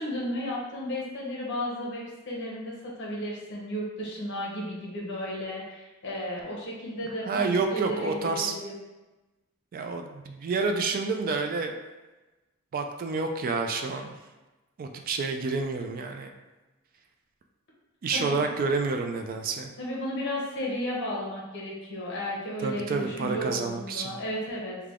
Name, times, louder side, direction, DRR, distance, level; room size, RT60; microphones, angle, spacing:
voice 1, 0.0-7.4 7.7-8.7 18.1-18.4 19.8-24.8, equal, 55° left, -3 dB, 0.9 m, -34 dB
voice 2, 7.3-8.5 9.7-11.7 12.7-14.1 14.8-16.3 18.0-19.7 22.6-24.2, right 4 dB, 40° right, 5 dB, 0.3 m, -29 dB
3.3 x 2.2 x 3.6 m, 1.1 s
head